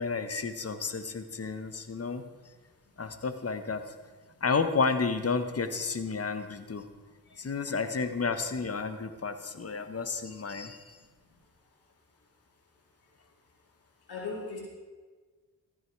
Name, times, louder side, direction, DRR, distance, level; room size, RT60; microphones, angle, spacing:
voice 1, 0.0-2.2 3.0-3.8 4.4-6.9 7.4-11.0, left 4 dB, 40° left, 10 dB, 1.3 m, -31 dB
voice 2, 14.1-14.6, left 4 dB, 75° left, -3 dB, 4.1 m, -40 dB
14.0 x 10.5 x 4.7 m, 1.4 s
supercardioid pair, 50°, 38 cm